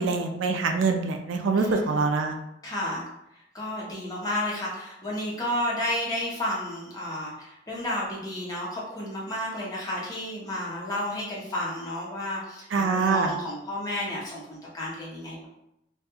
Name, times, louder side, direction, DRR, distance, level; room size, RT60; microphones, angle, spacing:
voice 1, 0.0-2.4 12.7-13.3, right 4 dB, 75° right, 5 dB, 0.3 m, -24 dB
voice 2, 1.5-2.0 2.6-3.0 3.5-15.5, left 1 dB, 20° left, -5 dB, 0.6 m, -32 dB
2.2 x 2.2 x 2.9 m, 0.83 s
head